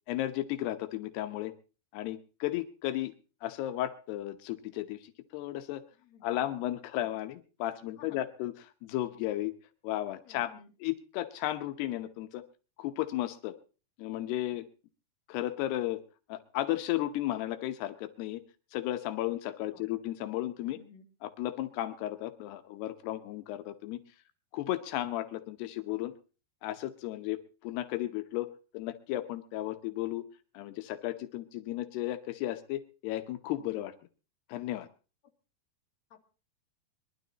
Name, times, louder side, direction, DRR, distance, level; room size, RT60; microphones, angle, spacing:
voice 1, 0.1-1.5 1.9-3.1 3.4-5.8 6.2-8.5 8.8-9.5 9.8-10.5 10.8-12.4 12.8-13.5 14.0-14.7 15.3-16.0 16.3-18.4 18.7-20.8 21.2-24.0 24.5-26.1 26.6-30.2 30.5-33.9 34.5-34.9, left 14 dB, 85° left, 11 dB, 3.0 m, -34 dB
voice 2, 7.8-8.2 10.2-10.7 19.7-19.8 20.6-21.0 36.1-36.2, left 6 dB, 45° left, 4 dB, 3.1 m, -55 dB
22.5 x 12.5 x 4.0 m, 0.36 s
omnidirectional pair, 4.6 m